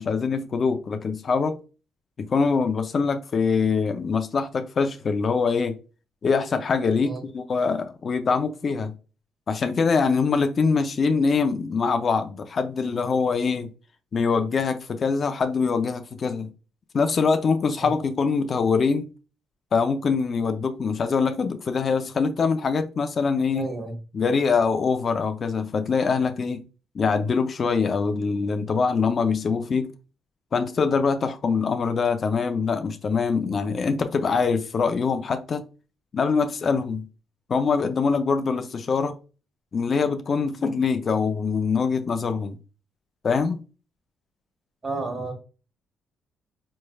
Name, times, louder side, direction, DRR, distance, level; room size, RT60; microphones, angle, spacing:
voice 1, 0.0-1.6 2.3-5.8 6.2-8.9 9.5-13.7 14.1-16.5 16.9-19.1 19.7-23.7 24.1-26.6 26.9-29.9 30.5-35.6 36.1-37.0 37.5-39.1 39.7-42.6 43.2-43.6, left 5 dB, 45° left, 0.5 m, -23 dB
voice 2, 23.5-23.9 44.8-45.3, right 2 dB, 35° right, 1.3 m, -31 dB
4.4 x 3.2 x 2.2 m
cardioid pair, 90°, 0 cm